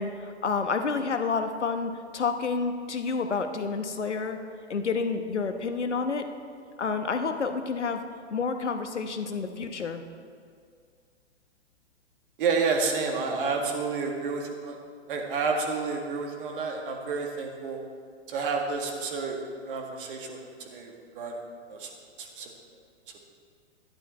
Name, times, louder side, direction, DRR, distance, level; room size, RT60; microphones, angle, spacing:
voice 1, 0.0-4.4 4.7-6.3 6.8-8.0 8.3-10.0, left 5 dB, 75° left, 7 dB, 1.1 m, -29 dB
voice 2, 12.4-14.8 15.1-17.8 18.3-19.4 19.7-21.4 21.7-21.9 22.2-22.5, right 4 dB, 50° right, 2 dB, 1.8 m, -30 dB
11.5 x 11.5 x 4.2 m, 2.2 s
figure-of-eight pair, 115°, 35 cm